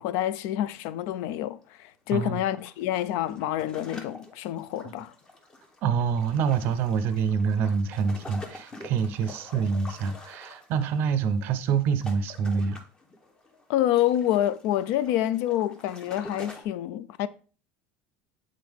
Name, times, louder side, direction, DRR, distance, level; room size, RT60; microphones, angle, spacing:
voice 1, 0.0-5.1 13.7-17.3, left 12 dB, 60° left, 0.4 m, -27 dB
sound 1, 0.6-0.8 1.1-1.2 2.1-16.6, left 2 dB, 15° left, 0.7 m, -47 dB
voice 2, 2.1-2.4 5.8-12.8, right 6 dB, 45° right, 0.5 m, -26 dB
8.1 x 3.7 x 3.4 m
cardioid pair, 170°, 5 cm